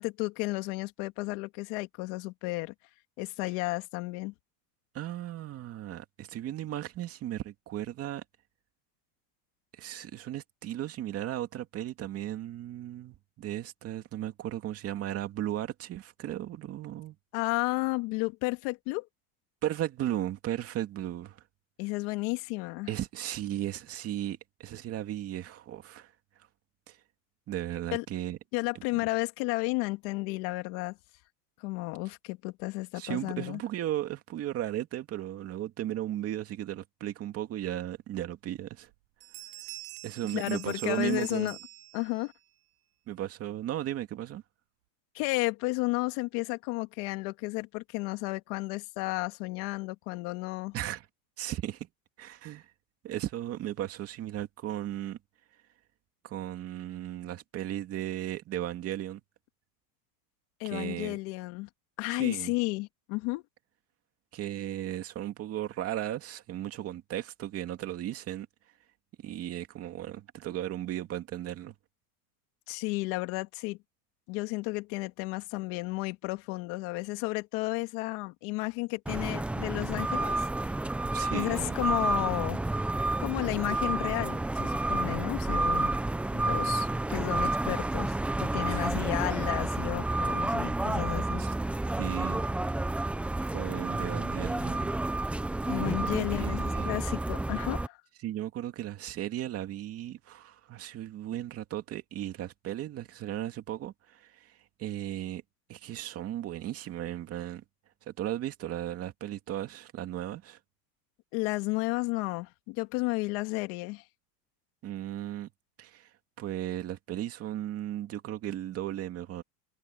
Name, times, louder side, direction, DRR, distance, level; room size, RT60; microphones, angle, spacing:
voice 1, 0.0-2.7 3.2-4.3 17.3-19.1 21.8-22.9 27.9-28.1 28.5-31.0 31.6-33.6 40.3-41.6 41.9-42.3 45.1-50.7 60.6-61.7 62.0-63.4 72.7-73.8 74.3-80.7 81.3-82.6 83.2-85.9 86.3-91.4 95.6-98.0 111.3-114.0, left 23 dB, 50° left, 2.3 m, -32 dB
voice 2, 4.9-8.2 9.8-17.2 19.6-21.4 22.9-26.1 26.9-27.0 27.5-28.4 29.0-29.1 32.9-38.9 40.0-41.6 43.1-44.4 50.7-51.0 51.4-51.9 52.2-52.7 53.0-55.2 56.2-59.2 60.6-61.2 62.1-62.5 64.3-68.5 69.2-71.7 81.0-81.8 88.7-88.9 91.4-91.5 92.0-92.4 93.3-94.9 95.7-97.0 98.2-105.4 105.7-107.6 108.1-110.6 114.8-115.5 115.8-116.1 116.4-119.4, right 12 dB, 30° right, 2.4 m, -36 dB
Bell, 38.8-39.0 39.2-42.4, right 22 dB, 60° right, 2.0 m, -46 dB
sound 1, 79.1-97.9, right 2 dB, 5° right, 0.6 m, -30 dB
supercardioid pair, 155°, 47 cm